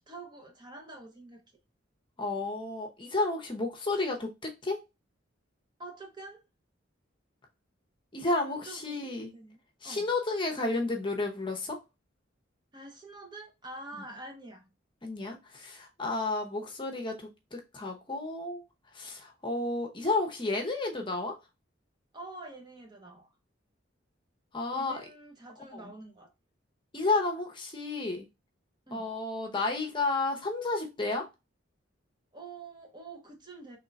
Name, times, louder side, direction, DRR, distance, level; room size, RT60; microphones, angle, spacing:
voice 1, 0.0-1.4 5.8-6.4 8.3-10.1 12.7-14.7 22.1-23.3 24.7-26.3 28.9-29.1 32.3-33.8, right 2 dB, 25° right, 0.8 m, -46 dB
voice 2, 2.2-4.8 8.1-9.3 9.8-11.8 13.9-14.0 15.0-18.6 18.9-21.4 24.5-25.0 25.7-25.9 26.9-28.3 28.9-31.3, left 2 dB, 25° left, 0.8 m, -32 dB
3.7 x 3.2 x 4.0 m
head